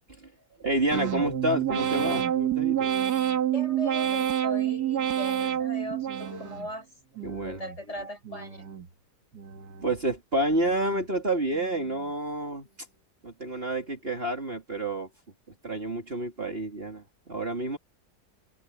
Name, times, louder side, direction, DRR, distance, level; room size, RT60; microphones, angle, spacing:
voice 1, 0.6-2.9 7.2-7.6 9.8-12.7 13.2-15.1 15.6-17.8, right 1 dB, 30° right, 3.1 m, -29 dB
sound 1, 0.9-6.7 7.2-7.8 8.2-8.9 9.3-10.0 10.4-11.0 11.5-12.1, right 10 dB, 60° right, 2.1 m, -29 dB
voice 2, 3.5-6.9 7.4-8.7, left 1 dB, 40° left, 7.0 m, -39 dB
open air
omnidirectional pair, 1.9 m